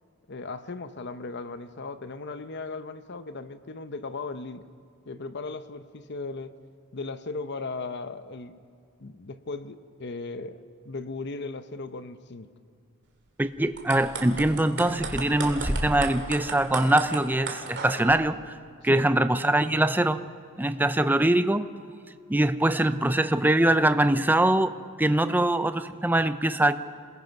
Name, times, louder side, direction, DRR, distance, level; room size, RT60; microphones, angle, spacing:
voice 1, 0.3-4.7 5.1-6.5 6.9-8.6 9.0-12.5 18.9-19.1, left 3 dB, 50° left, 11 dB, 0.8 m, -37 dB
voice 2, 13.4-18.5 18.8-20.2 20.6-21.7 22.3-26.7, right 1 dB, 10° right, 11 dB, 0.5 m, -23 dB
sound 1, 13.6-18.1, right 2 dB, 55° right, 2.6 m, -33 dB
27.5 x 19.5 x 5.3 m, 2.2 s
head